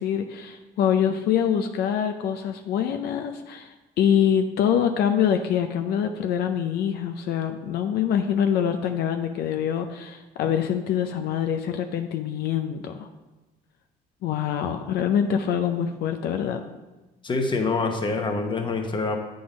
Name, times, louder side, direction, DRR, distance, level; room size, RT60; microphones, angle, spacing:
voice 1, 0.0-13.1 14.2-16.6, left 8 dB, 75° left, 7 dB, 0.5 m, -25 dB
voice 2, 17.2-19.2, left 3 dB, 30° left, 4 dB, 1.0 m, -25 dB
8.7 x 3.9 x 5.0 m, 1.1 s
cardioid pair, 110°, 17 cm